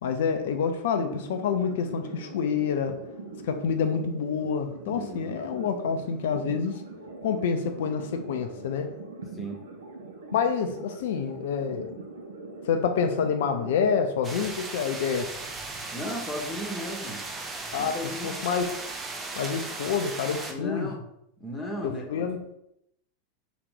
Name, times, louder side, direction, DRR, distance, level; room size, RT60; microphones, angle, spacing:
voice 1, 0.0-2.9 3.4-6.7 7.2-8.9 10.3-12.1 12.7-15.3 17.7-18.7 19.4-20.9 21.8-22.4, left 6 dB, 60° left, 6 dB, 0.4 m, -27 dB
sound 1, 0.9-14.0, right 3 dB, 70° right, 0.6 m, -42 dB
voice 2, 4.9-5.3 9.3-9.6 15.9-17.2 17.8-18.4 20.5-21.0 21.4-22.2, left 1 dB, 20° left, 1 dB, 1.0 m, -35 dB
sound 2, 14.2-20.5, right 3 dB, 20° right, 0.7 m, -37 dB
3.8 x 3.0 x 3.7 m, 0.78 s
figure-of-eight pair, 90°, 0 cm